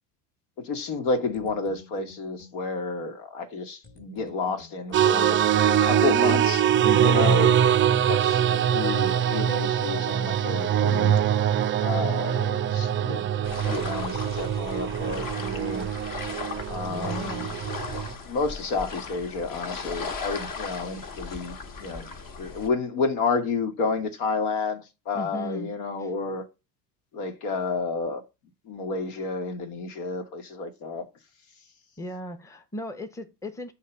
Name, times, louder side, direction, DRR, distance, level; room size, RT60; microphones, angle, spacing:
voice 1, 0.6-6.6 7.0-7.6 8.1-11.2 11.8-13.3 13.7-15.9 16.7-17.4 18.3-21.5 21.8-22.1 22.4-26.4 27.1-28.2 28.7-31.1, left 4 dB, 75° left, 1.4 m, -30 dB
sound 1, 1.1-2.6 3.8-6.1, left 3 dB, 25° left, 1.1 m, -51 dB
sound 2, 4.9-18.1, right 9 dB, 30° right, 0.3 m, -23 dB
voice 2, 6.8-7.4 16.9-17.5 25.1-25.7 26.0-26.1 32.0-33.7, equal, 5° left, 0.8 m, -36 dB
sound 3, 13.4-22.7, left 4 dB, 40° left, 1.2 m, -37 dB
6.4 x 2.9 x 5.4 m
supercardioid pair, 85°, 50 cm